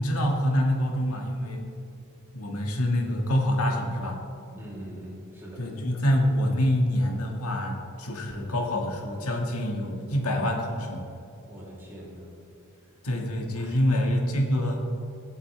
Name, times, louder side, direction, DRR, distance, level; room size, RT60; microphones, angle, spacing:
voice 1, 0.0-1.7 2.3-4.2 5.6-11.0 13.0-14.8, equal, 80° left, 1 dB, 2.0 m, -26 dB
voice 2, 4.5-5.6 11.4-12.3 12.8-13.0 13.5-14.0, right 1 dB, 10° right, -7 dB, 3.3 m, -43 dB
24.5 x 8.4 x 3.5 m, 2.5 s
head